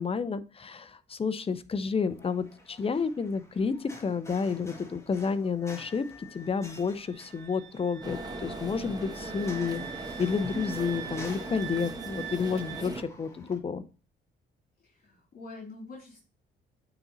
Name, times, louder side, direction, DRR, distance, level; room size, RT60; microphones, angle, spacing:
voice 1, 0.0-9.8 10.2-13.8, left 5 dB, 30° left, 13 dB, 0.6 m, -30 dB
sound 1, 2.1-13.6, left 2 dB, 15° left, 1.8 m, -51 dB
Wind instrument woodwind instrument, 5.6-12.9, right 9 dB, 65° right, 1.7 m, -45 dB
sound 2, 8.0-13.0, right 2 dB, 20° right, 1.5 m, -39 dB
voice 2, 14.8-16.2, left 3 dB, 45° left, -2 dB, 3.1 m, -45 dB
8.8 x 4.0 x 4.0 m, 0.35 s
cardioid pair, 90°, 20 cm